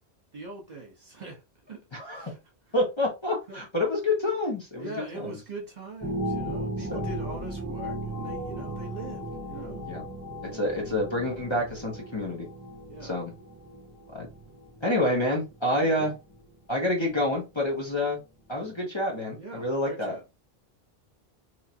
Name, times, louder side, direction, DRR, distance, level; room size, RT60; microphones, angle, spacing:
voice 1, 0.3-1.4 1.7-1.8 2.1-2.4 3.5-3.6 4.8-9.8 10.5-10.8 12.9-13.1 15.8-16.1 19.4-20.2, right 2 dB, 45° right, 1.2 m, -41 dB
voice 2, 1.9-2.3 2.7-5.3 9.9-10.0 10.5-12.5 13.0-13.3 14.1-14.3 14.8-16.1 16.7-18.2 18.5-20.1, left 1 dB, 25° left, 1.1 m, -28 dB
sound 1, 6.0-16.6 17.1-17.2, right 1 dB, 20° right, 0.9 m, -36 dB
3.7 x 3.1 x 2.8 m
omnidirectional pair, 1.1 m